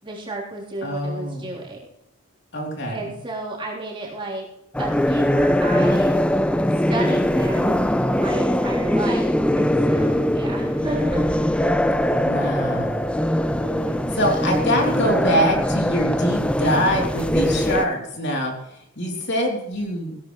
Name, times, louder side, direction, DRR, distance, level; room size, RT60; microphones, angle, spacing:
voice 1, 0.0-1.8 2.9-4.5 4.8-6.2 6.7-7.8 8.2-11.3 13.6-14.1, right 2 dB, 20° right, -4 dB, 3.6 m, -32 dB
voice 2, 0.8-1.4 2.5-3.0 12.1-13.1 14.1-20.1, equal, 50° left, 0 dB, 3.3 m, -24 dB
sound 1, 4.7-17.8, left 1 dB, 5° left, 0.3 m, -21 dB
17.0 x 13.0 x 3.2 m, 0.82 s
head